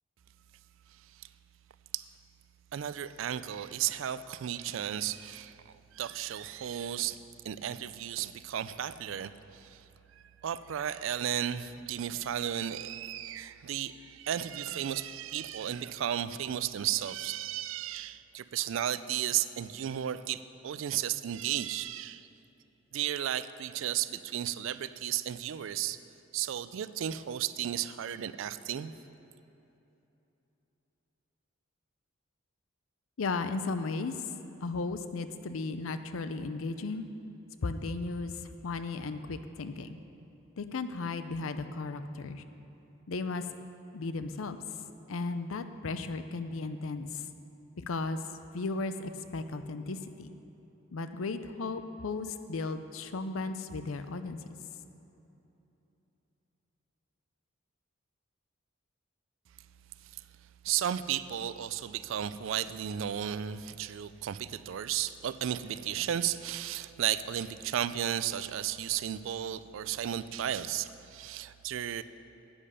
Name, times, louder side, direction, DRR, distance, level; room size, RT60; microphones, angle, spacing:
voice 1, 2.7-7.2 7.4-9.8 10.4-22.3 22.9-26.0 26.3-28.9 60.6-72.0, right 10 dB, 65° right, 14 dB, 0.3 m, -34 dB
voice 2, 33.2-34.1 34.6-37.1 37.6-38.3 38.6-40.0 40.6-42.4 43.1-43.4 43.9-44.6 45.1-47.1 47.9-48.2 48.5-50.3 50.9-54.4, left 3 dB, 75° left, 10 dB, 0.5 m, -35 dB
10.0 x 8.7 x 5.5 m, 3.0 s
head